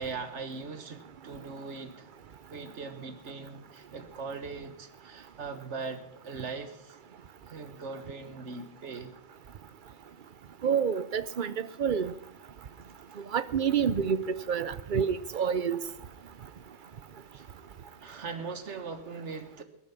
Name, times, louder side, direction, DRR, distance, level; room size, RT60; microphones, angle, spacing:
voice 1, 0.0-2.1 2.5-7.0 7.5-9.1 9.9-10.0 17.3-17.5 18.0-19.6, right 4 dB, 85° right, 1.6 m, -40 dB
voice 2, 10.6-12.1 13.2-15.8, right 7 dB, 50° right, 0.8 m, -28 dB
21.0 x 8.9 x 5.8 m
omnidirectional pair, 1.2 m